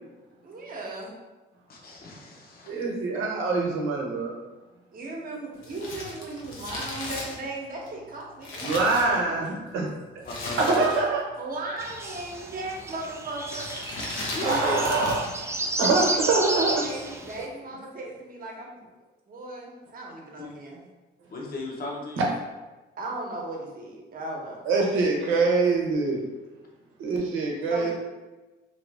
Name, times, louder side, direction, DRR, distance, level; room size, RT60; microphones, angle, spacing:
voice 1, 0.4-1.1 4.9-8.6 9.1-9.4 10.8-11.0 11.4-13.7 14.0-14.1 16.7-18.8 19.3-20.8 23.0-24.6 27.7-27.9, right 2 dB, 45° right, -1 dB, 0.9 m, -37 dB
voice 2, 1.7-2.8 10.2-10.6 14.3-15.0 20.4-20.5 21.3-22.3 25.2-25.5 27.8-27.9, left 2 dB, 50° left, -2 dB, 0.9 m, -36 dB
voice 3, 2.7-4.3 6.2-6.3 8.6-9.9 10.6-11.2 14.4-15.2 15.8-16.8 24.7-26.2 27.0-27.9, right 3 dB, 90° right, -1 dB, 0.8 m, -24 dB
Crumpling crinkling, 5.6-9.6 10.2-11.3 11.5-11.6 12.4-12.8 13.5-15.4 15.6-15.7, left 2 dB, 85° left, 0.8 m, -36 dB
sound 1, 11.8-17.5, right 2 dB, 15° right, 0.4 m, -32 dB
2.7 x 2.5 x 3.3 m, 1.2 s
cardioid pair, 90°, 20 cm